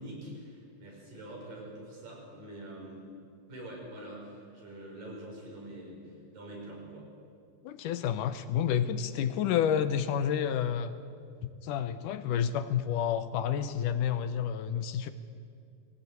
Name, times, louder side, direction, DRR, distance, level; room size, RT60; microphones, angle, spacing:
voice 1, 0.0-3.1 3.5-7.1, right 1 dB, 80° right, -2 dB, 7.4 m, -45 dB
voice 2, 7.6-10.9 11.6-15.1, left 9 dB, 75° left, 10 dB, 2.3 m, -29 dB
20.5 x 17.0 x 9.4 m, 2.4 s
omnidirectional pair, 3.9 m